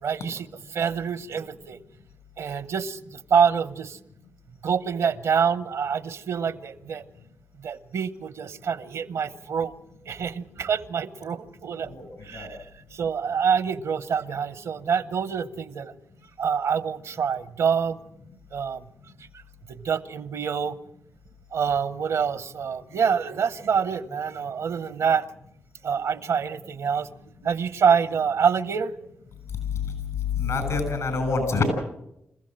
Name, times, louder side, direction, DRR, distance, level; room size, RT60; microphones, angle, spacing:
voice 1, 0.0-1.8 2.4-4.0 4.6-7.0 7.6-9.7 10.1-15.9 16.4-18.0 18.5-18.8 19.7-20.8 21.5-25.3 25.8-27.1 27.4-28.9, right 6 dB, 80° right, 16 dB, 0.9 m, -26 dB
voice 2, 30.4-31.6, left 4 dB, 80° left, 8 dB, 6.9 m, -26 dB
27.0 x 15.5 x 7.5 m, 0.82 s
supercardioid pair, 40°, 5 cm